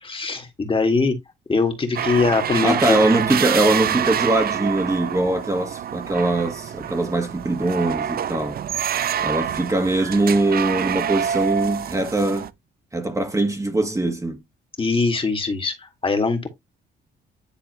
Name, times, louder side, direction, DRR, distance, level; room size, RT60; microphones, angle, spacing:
voice 1, 0.0-1.2 1.5-3.0 14.8-16.5, left 4 dB, 25° left, 2.1 m, -22 dB
sound 1, 2.0-12.5, right 9 dB, 50° right, 0.5 m, -26 dB
voice 2, 2.6-8.6 9.2-12.5 12.9-14.4, right 2 dB, 15° right, 1.5 m, -22 dB
10.0 x 3.9 x 3.0 m
cardioid pair, 90°, 20 cm